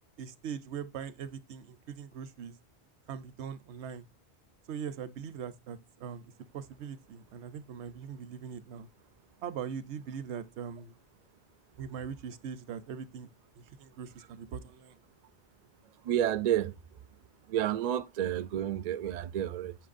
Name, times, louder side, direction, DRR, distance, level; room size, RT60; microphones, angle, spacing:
voice 1, 0.2-2.6 3.1-4.1 4.7-8.9 9.4-11.0 11.8-13.3 13.6-15.0, right 7 dB, 80° right, 0.9 m, -41 dB
voice 2, 16.0-16.7 17.5-19.8, right 11 dB, 60° right, 0.4 m, -30 dB
7.7 x 5.8 x 2.5 m
omnidirectional pair, 1.1 m